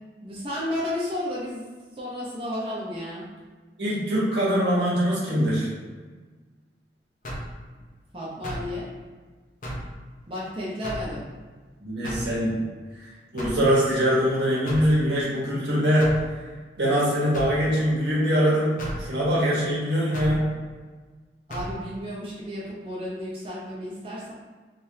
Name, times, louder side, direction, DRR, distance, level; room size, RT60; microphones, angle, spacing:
voice 1, 0.2-1.6 1.9-3.3 8.1-8.9 10.3-11.2 21.5-24.3, left 1 dB, 30° right, -7 dB, 0.7 m, -32 dB
voice 2, 3.8-5.7 11.8-12.6 13.0-16.2 16.8-20.5, equal, 75° right, -6 dB, 1.3 m, -23 dB
sound 1, 7.2-7.6 8.4-8.7 9.6-9.9 10.8-11.1 12.0-12.3 13.4-13.7 14.7-14.9 16.0-16.2 17.3-17.6 18.8-19.0 20.1-20.4 21.5-21.7, equal, 50° left, 0.7 m, -33 dB
3.4 x 3.3 x 2.8 m, 1.4 s
head